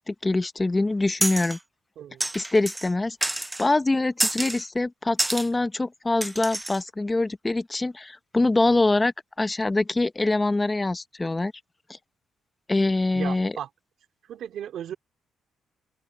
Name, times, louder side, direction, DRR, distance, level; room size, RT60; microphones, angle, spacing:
voice 1, 0.0-1.6 2.3-11.5 12.7-13.5, left 2 dB, 20° left, 0.9 m, -24 dB
sound 1, 1.2-1.6 2.2-2.9 3.2-3.7 4.2-4.6 5.2-5.5 6.2-6.8, right 1 dB, 10° right, 0.6 m, -28 dB
voice 2, 2.0-2.3 13.1-13.7 14.3-14.9, right 10 dB, 70° right, 3.9 m, -35 dB
open air
cardioid pair, 90°, 0 cm